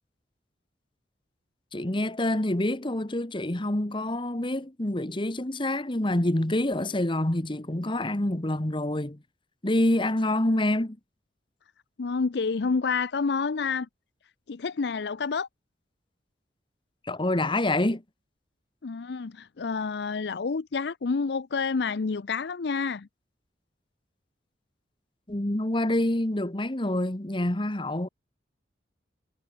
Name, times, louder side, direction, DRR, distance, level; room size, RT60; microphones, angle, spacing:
voice 1, 1.7-9.2 9.6-11.0 17.0-18.0 25.3-28.1, left 1 dB, 30° left, 1.4 m, -27 dB
voice 2, 12.0-13.9 14.5-15.5 18.8-23.1, left 4 dB, 65° left, 0.5 m, -28 dB
head